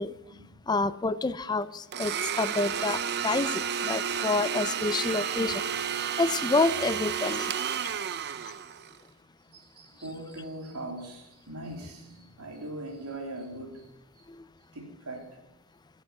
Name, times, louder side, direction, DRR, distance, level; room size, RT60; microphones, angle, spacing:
voice 1, 0.7-5.6 6.2-7.5 14.4-14.5, left 3 dB, 20° left, 15 dB, 0.5 m, -28 dB
Domestic sounds home sounds, 1.9-9.0, right 8 dB, 50° right, 0.7 m, -31 dB
voice 2, 5.0-5.5 9.5-13.9 14.2-14.3 14.7-15.4, right 1 dB, 85° right, 2 dB, 3.5 m, -41 dB
15.0 x 7.8 x 9.7 m, 0.91 s
head